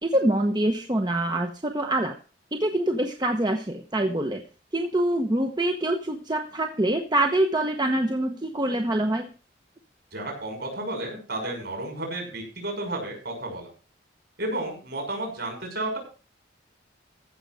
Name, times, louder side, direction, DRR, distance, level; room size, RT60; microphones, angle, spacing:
voice 1, 0.0-2.1 2.5-4.4 4.7-9.3, right 1 dB, 20° right, 4 dB, 1.0 m, -25 dB
voice 2, 10.1-13.7 14.4-16.0, right 1 dB, 55° right, 1 dB, 6.3 m, -32 dB
15.0 x 6.6 x 6.3 m, 0.37 s
head